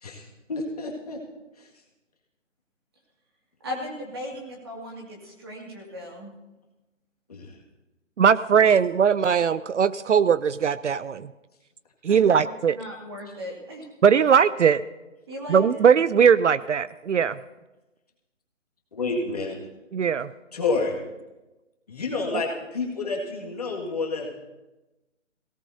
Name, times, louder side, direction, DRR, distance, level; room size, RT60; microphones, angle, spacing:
voice 1, 0.0-1.2 1.6-1.7 7.3-7.6 18.9-19.6 20.5-21.0 21.9-24.3, left 3 dB, 30° left, -1 dB, 2.0 m, -29 dB
voice 2, 3.6-6.3 12.1-13.9 15.3-15.9, equal, 20° right, -2 dB, 2.2 m, -37 dB
voice 3, 8.2-11.3 12.0-12.8 14.0-14.8 15.5-17.4 19.9-20.3 22.3-22.4, right 7 dB, 70° right, 16 dB, 0.5 m, -20 dB
22.0 x 17.5 x 2.7 m, 1.1 s
hypercardioid pair, 180°, 38 cm